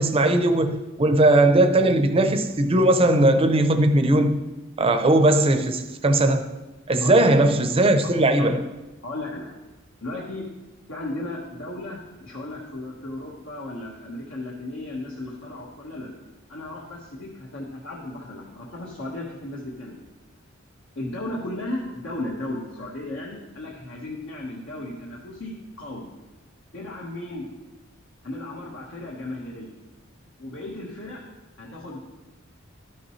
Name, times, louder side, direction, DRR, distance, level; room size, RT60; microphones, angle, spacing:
voice 1, 0.0-4.4 4.8-6.5 6.9-8.6, right 1 dB, 30° right, 0.6 m, -19 dB
voice 2, 7.0-7.4 8.0-8.5 9.0-9.6 10.0-10.5 10.9-16.2 16.5-20.0 20.9-26.1 26.7-27.5 28.2-29.7 30.4-31.2 31.6-32.0, left 1 dB, 75° left, 1.4 m, -35 dB
12.5 x 6.4 x 3.2 m
head